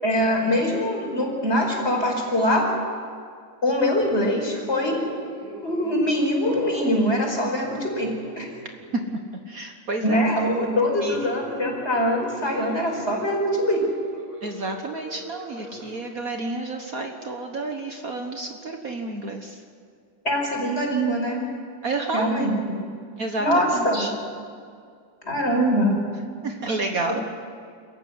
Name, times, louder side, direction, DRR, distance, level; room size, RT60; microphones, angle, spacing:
voice 1, 0.0-2.6 3.6-5.0 5.6-8.1 8.4-8.5 10.0-13.8 20.2-21.4 22.1-22.8 23.4-24.1 25.2-26.0, equal, 35° left, 0 dB, 5.5 m, -23 dB
sound 1, 4.0-4.5 4.9-6.1 6.4-6.9 7.6-8.5 8.8-9.1 11.1-15.9, right 1 dB, 20° right, 7.6 m, -39 dB
voice 2, 9.5-10.2 11.0-11.3 14.4-19.6 21.8-22.3 23.2-23.5 23.7-24.1 26.4-27.2, right 2 dB, 50° right, 4 dB, 1.8 m, -30 dB
28.5 x 15.0 x 9.6 m, 2.2 s
omnidirectional pair, 2.1 m